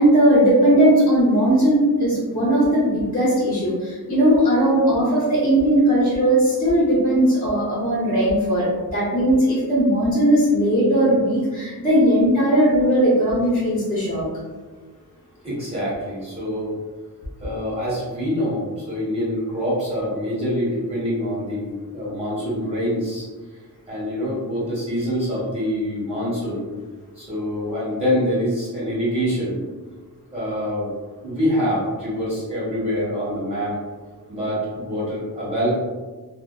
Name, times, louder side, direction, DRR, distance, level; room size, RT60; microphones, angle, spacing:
voice 1, 0.0-14.3, right 1 dB, 20° left, -8 dB, 0.6 m, -18 dB
voice 2, 15.4-16.7 17.4-23.3 23.9-26.7 27.2-29.6 30.3-30.9 31.2-33.8 34.3-35.7, equal, 15° right, -9 dB, 1.3 m, -25 dB
2.6 x 2.1 x 2.2 m, 1.3 s
wide cardioid pair, 105°, 39 cm